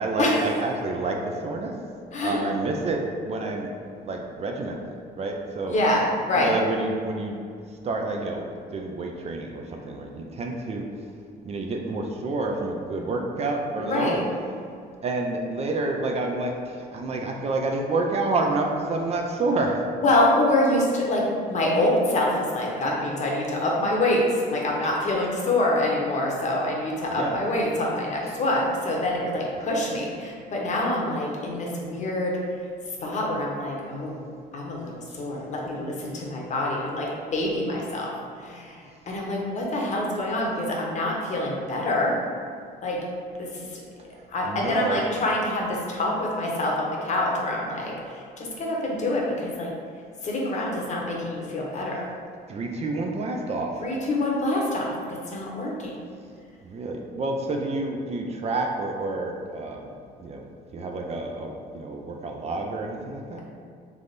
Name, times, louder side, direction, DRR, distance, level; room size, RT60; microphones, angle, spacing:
voice 1, 0.0-1.7 2.2-3.7 4.0-5.7 6.4-7.4 7.8-10.9 11.4-14.2 15.0-19.8 27.1-27.4 28.3-28.4 44.4-45.0 51.9-52.0 52.5-53.7 56.6-59.9 60.2-60.5 60.7-63.4, right 2 dB, 40° right, 2 dB, 0.5 m, -29 dB
voice 2, 2.1-2.4 5.7-6.6 13.8-14.2 20.0-32.4 33.0-34.2 34.5-38.1 38.4-38.8 39.1-42.2 42.8-43.0 43.7-43.8 44.3-49.7 50.2-52.1 53.8-55.9, left 1 dB, 45° left, -2 dB, 0.9 m, -26 dB
3.4 x 3.3 x 4.0 m, 2.3 s
cardioid pair, 110°, 17 cm